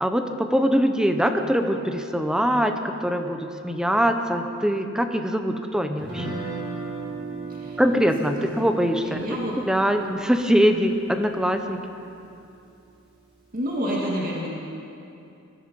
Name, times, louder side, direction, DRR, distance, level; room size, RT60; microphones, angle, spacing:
voice 1, 0.0-2.7 3.0-6.3 7.8-9.3 9.7-11.8, equal, 5° right, 6 dB, 0.8 m, -22 dB
Guitar, 6.0-12.1, right 3 dB, 25° right, 4.3 m, -37 dB
voice 2, 7.5-7.8 8.2-8.5 9.0-9.6 13.5-14.5, equal, 45° right, -3 dB, 2.0 m, -29 dB
20.0 x 13.5 x 5.4 m, 2.6 s
head